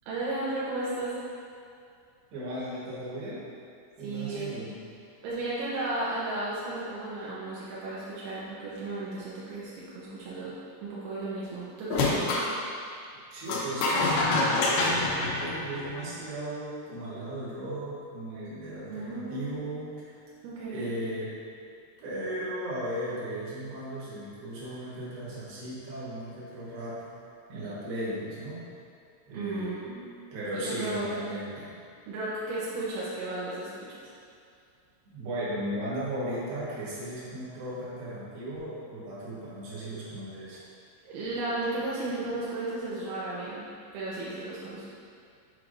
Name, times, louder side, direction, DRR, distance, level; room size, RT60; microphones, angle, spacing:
voice 1, 0.1-1.2 4.0-4.6 5.2-10.6 10.8-12.5 18.9-19.6 20.4-20.9 29.3-30.0 30.5-31.1 32.1-34.1 41.0-43.7 43.9-44.9, right 2 dB, 85° right, -8 dB, 3.3 m, -34 dB
voice 2, 2.3-3.4 4.0-4.8 13.3-20.2 20.7-21.4 22.0-27.1 27.5-28.7 29.3-29.9 30.3-31.7 35.1-40.6, right 1 dB, 70° right, -8 dB, 3.4 m, -36 dB
sound 1, 11.9-12.5 13.5-16.2, left 2 dB, 80° left, 2.9 m, -26 dB
8.2 x 4.6 x 2.6 m, 2.4 s
omnidirectional pair, 5.3 m